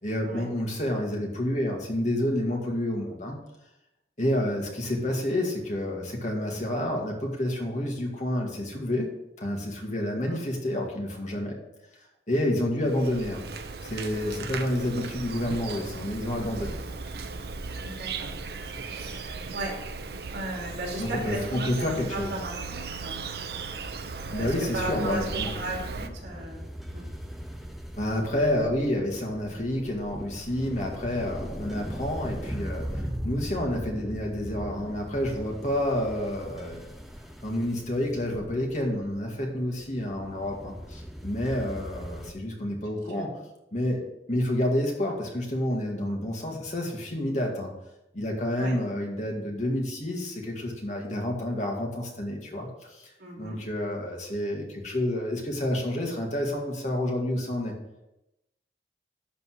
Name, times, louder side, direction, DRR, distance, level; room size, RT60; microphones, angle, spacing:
voice 1, 0.0-3.4 4.2-9.1 9.4-11.6 12.3-13.4 13.8-16.8 21.0-22.3 24.3-25.5 28.0-36.8 37.4-43.3 43.7-44.0 44.3-47.7 48.1-57.7, left 1 dB, 40° left, 0 dB, 2.0 m, -29 dB
Insect, 12.8-26.1, right 4 dB, 60° right, 0.7 m, -37 dB
voice 2, 17.8-18.3 18.7-19.7 20.3-23.2 24.4-25.2 25.5-26.6 26.9-27.0 43.1-43.2 48.6-48.8 53.2-53.6, right 1 dB, 80° right, -1 dB, 3.0 m, -36 dB
sound 1, 25.0-42.3, equal, ahead, 0.6 m, -39 dB
12.0 x 4.1 x 6.3 m, 0.90 s
head